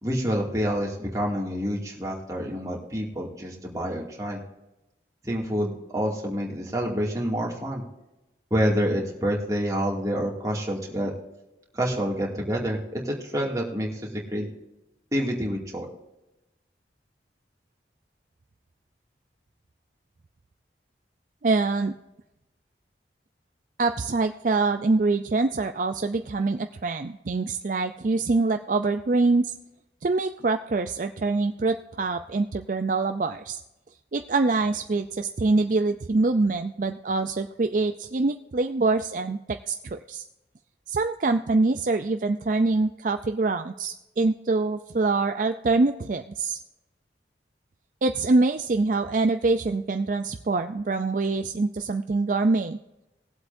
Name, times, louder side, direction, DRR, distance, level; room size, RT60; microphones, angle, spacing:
voice 1, 0.0-4.4 5.2-7.8 8.5-11.1 11.8-14.5 15.1-15.9, equal, 20° right, -2 dB, 2.3 m, -28 dB
voice 2, 21.4-21.9 23.8-29.5 30.0-33.6 34.1-40.2 40.9-46.6 48.0-52.8, right 3 dB, 45° right, 7 dB, 0.4 m, -25 dB
20.5 x 8.0 x 2.6 m, 0.96 s
head